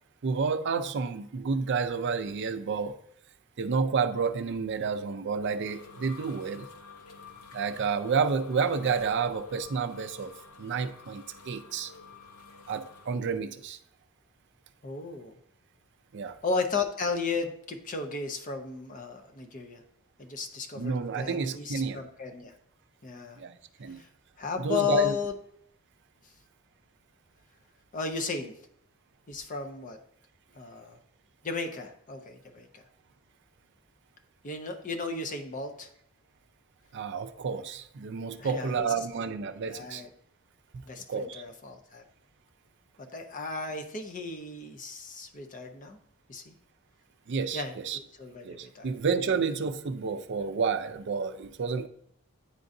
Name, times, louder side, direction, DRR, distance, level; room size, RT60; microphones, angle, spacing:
voice 1, 0.2-2.9 3.6-6.7 7.5-10.3 10.6-11.9 12.7-13.8 16.1-16.4 20.7-22.0 23.4-24.0 24.6-25.2 36.9-40.0 41.1-41.4 47.3-48.0 48.4-51.9, right 5 dB, 50° right, 10 dB, 0.4 m, -30 dB
sound 1, 5.2-13.2, left 4 dB, 85° left, 0.8 m, -50 dB
voice 2, 14.8-15.3 16.4-19.8 20.2-22.5 23.0-23.4 24.0-24.1 24.4-25.3 27.9-28.5 29.3-30.0 30.5-31.0 31.4-32.8 34.4-35.9 38.4-38.9 39.6-40.1 40.9-42.0 43.0-46.0 46.3-46.6 47.5-48.9, left 5 dB, 35° left, 5 dB, 0.6 m, -34 dB
9.6 x 3.8 x 2.6 m, 0.69 s
head